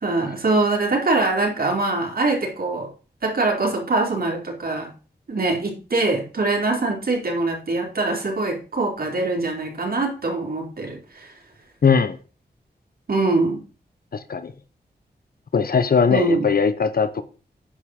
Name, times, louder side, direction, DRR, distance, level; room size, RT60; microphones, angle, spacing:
voice 1, 0.0-2.9 3.2-4.9 5.3-11.3 13.1-13.6 16.1-16.5, right 2 dB, 60° right, -1 dB, 4.3 m, -23 dB
voice 2, 11.8-12.2 14.1-14.5 15.5-17.2, left 5 dB, 60° left, 11 dB, 0.9 m, -19 dB
9.9 x 5.7 x 6.4 m, 0.36 s
wide cardioid pair, 80°, 17 cm